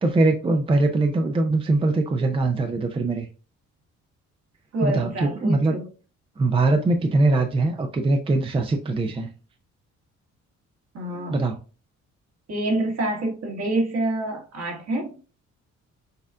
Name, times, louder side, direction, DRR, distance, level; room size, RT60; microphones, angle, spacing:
voice 1, 0.0-3.3 4.8-5.8 6.4-9.3 11.3-11.6, right 2 dB, 20° right, 5 dB, 0.5 m, -22 dB
voice 2, 4.7-5.9 10.9-11.4 12.5-15.2, right 2 dB, 55° right, 1 dB, 1.7 m, -27 dB
6.5 x 2.4 x 2.3 m, 0.35 s
cardioid pair, 90°, 30 cm